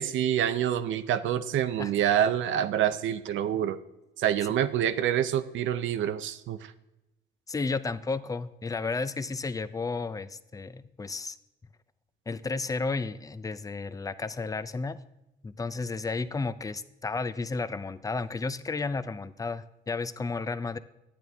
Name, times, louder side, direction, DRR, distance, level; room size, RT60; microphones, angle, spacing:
voice 1, 0.0-3.8 4.2-6.7, right 10 dB, 75° right, 11 dB, 0.6 m, -27 dB
voice 2, 7.5-11.4 12.3-15.0 15.4-20.8, left 4 dB, 15° left, 14 dB, 0.5 m, -32 dB
10.0 x 9.2 x 3.5 m, 0.93 s
cardioid pair, 90°, 20 cm